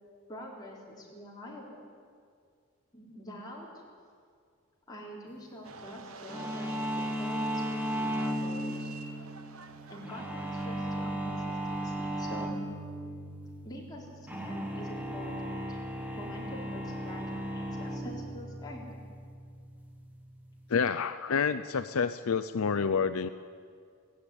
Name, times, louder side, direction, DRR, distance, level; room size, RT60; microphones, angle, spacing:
voice 1, 0.3-1.8 2.9-3.7 4.9-8.9 9.9-12.6 13.6-15.8 16.2-18.9, equal, 15° left, -3 dB, 3.9 m, -45 dB
sound 1, 5.6-10.7, right 4 dB, 70° right, 1.2 m, -48 dB
sound 2, 6.3-20.8, equal, 5° right, 1.7 m, -36 dB
voice 2, 20.7-23.3, left 6 dB, 70° left, 12 dB, 0.5 m, -28 dB
16.5 x 15.5 x 10.0 m, 2.1 s
head